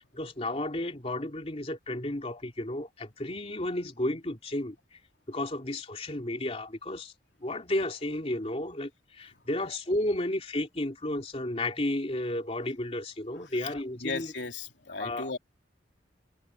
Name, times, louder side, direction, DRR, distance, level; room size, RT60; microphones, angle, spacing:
voice 1, 0.0-5.0 5.3-7.1 7.4-14.3 15.0-15.3, left 1 dB, 35° left, 3.0 m, -33 dB
voice 2, 13.3-15.4, left 3 dB, 75° left, 3.4 m, -37 dB
head